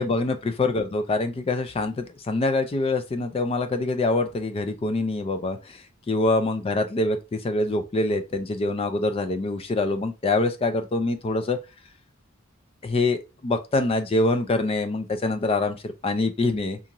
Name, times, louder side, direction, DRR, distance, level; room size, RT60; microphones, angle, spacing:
voice 1, 0.0-11.6 12.8-16.8, left 2 dB, 25° left, 0.3 m, -25 dB
2.5 x 2.4 x 2.9 m
head